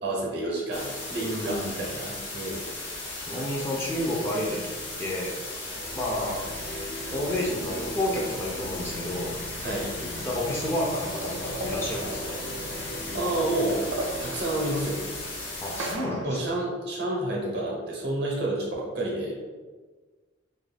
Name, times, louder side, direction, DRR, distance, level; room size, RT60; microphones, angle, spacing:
voice 1, 0.0-2.7 9.6-9.9 13.1-13.8 14.2-15.0 16.2-19.5, right 1 dB, 60° right, -2 dB, 0.7 m, -29 dB
sound 1, 0.7-15.9, left 2 dB, 75° left, 0.9 m, -37 dB
voice 2, 1.2-1.9 3.3-5.4 6.0-6.4 7.1-9.3 9.7-12.4 15.6-16.4, left 1 dB, 15° left, -4 dB, 0.3 m, -31 dB
sound 2, 5.6-16.1, equal, 60° left, 0.6 m, -40 dB
sound 3, 6.4-8.6 9.6-9.7 9.9-13.1 13.4-16.6, right 2 dB, 85° right, 0.3 m, -39 dB
2.3 x 2.2 x 3.2 m, 1.4 s
head